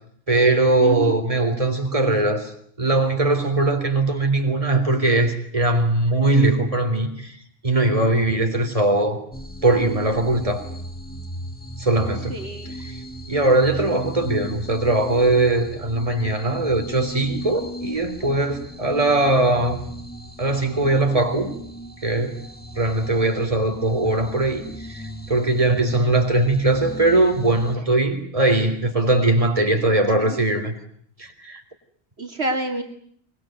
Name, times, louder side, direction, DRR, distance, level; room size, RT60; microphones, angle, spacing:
voice 1, 0.3-2.5 2.8-7.4 7.6-9.2 9.6-10.6 11.8-12.3 12.8-13.0 13.3-19.8 20.4-21.5 22.0-22.3 22.8-30.7 31.2-31.6, right 2 dB, 30° right, 3.9 m, -20 dB
voice 2, 0.8-1.1 12.3-12.8 30.2-30.4 32.2-32.8, right 2 dB, 70° right, 2.9 m, -28 dB
sound 1, 9.3-27.8, equal, 10° left, 2.3 m, -37 dB
24.0 x 22.5 x 9.2 m
omnidirectional pair, 1.1 m